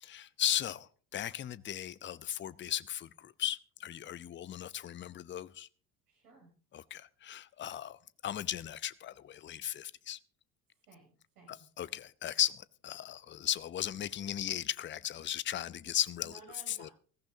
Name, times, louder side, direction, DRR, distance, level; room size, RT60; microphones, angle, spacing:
voice 1, 0.0-5.7 6.7-10.2 11.5-16.4 16.7-16.9, left 11 dB, 25° left, 0.6 m, -36 dB
voice 2, 6.1-6.5 10.9-11.6 16.2-16.9, right 4 dB, 80° right, 6.6 m, -56 dB
20.5 x 15.0 x 2.7 m
hypercardioid pair, 65°, 45 cm